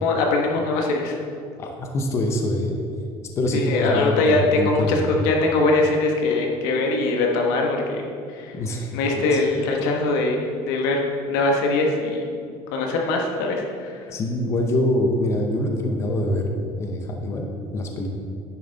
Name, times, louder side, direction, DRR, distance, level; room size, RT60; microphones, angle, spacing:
voice 1, 0.0-1.2 3.5-8.1 8.4-8.5 8.9-12.3 12.7-14.0, left 2 dB, 85° left, 1 dB, 1.2 m, -22 dB
voice 2, 1.6-2.8 3.4-5.1 8.5-9.4 14.1-16.5 16.8-17.5 17.7-18.1, left 1 dB, 25° left, 3 dB, 0.7 m, -24 dB
10.0 x 6.9 x 4.0 m, 2.4 s
cardioid pair, 165°, 11 cm